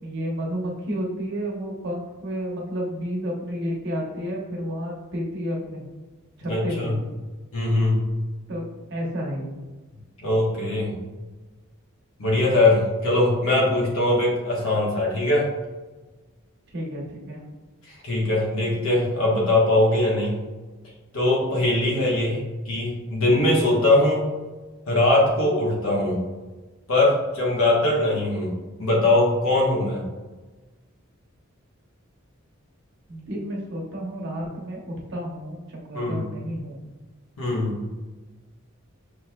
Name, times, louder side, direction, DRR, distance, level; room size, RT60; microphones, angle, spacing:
voice 1, 0.0-5.8 6.4-7.0 8.5-8.6 8.9-9.6 16.7-17.4 33.1-36.8, equal, 55° right, -2 dB, 1.1 m, -31 dB
voice 2, 6.5-6.9 7.5-8.0 10.2-11.0 12.2-15.5 17.9-20.4 21.1-24.2 24.9-26.2 26.9-28.5 28.8-30.1 35.9-36.2 37.4-37.8, left 2 dB, 75° left, -4 dB, 1.2 m, -21 dB
6.2 x 3.1 x 2.3 m, 1.2 s
head